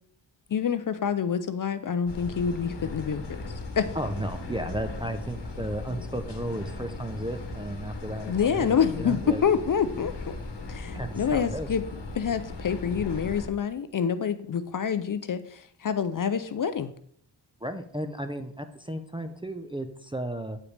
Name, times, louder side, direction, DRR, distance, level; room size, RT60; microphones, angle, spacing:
voice 1, 0.5-3.9 8.3-10.4 10.7-11.8 12.1-16.9, left 7 dB, 45° left, 12 dB, 0.4 m, -27 dB
sound 1, 2.1-13.5, left 3 dB, 65° left, 1.1 m, -38 dB
voice 2, 4.0-8.7 9.0-9.4 10.9-11.7 17.6-20.6, right 1 dB, 10° right, 6 dB, 0.4 m, -34 dB
8.4 x 5.0 x 3.2 m, 0.65 s
wide cardioid pair, 90°, 45 cm